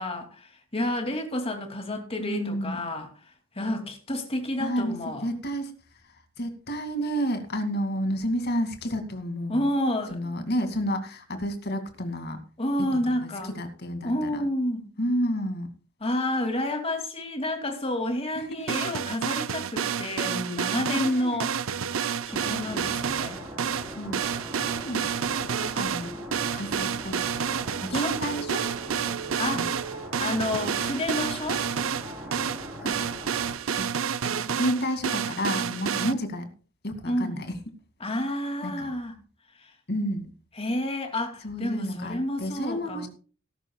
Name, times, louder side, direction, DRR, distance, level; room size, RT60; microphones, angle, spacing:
voice 1, 0.0-3.1 3.5-5.2 9.5-10.4 12.6-13.5 14.0-14.9 16.0-21.5 22.2-23.4 27.9-28.1 29.4-29.8 30.2-31.7 37.0-37.4 38.0-39.1 39.6-39.7 40.6-43.1, left 1 dB, 30° left, 2.7 m, -29 dB
voice 2, 2.2-2.8 4.6-5.7 6.4-9.6 10.1-12.4 12.8-12.9 13.2-14.5 15.0-15.7 18.3-18.9 20.9-21.4 24.0-24.2 24.6-25.1 25.4-26.1 26.5-27.2 27.5-28.7 29.5-29.6 32.8-33.0 33.7-33.9 34.2-36.5 36.8-37.5 38.6-38.9 39.9-40.3 41.4-43.1, equal, 55° left, 2.4 m, -31 dB
sound 1, 18.7-36.1, right 7 dB, 75° right, 0.6 m, -29 dB
sound 2, 21.4-33.6, right 1 dB, 10° right, 4.2 m, -40 dB
18.5 x 11.0 x 2.4 m
head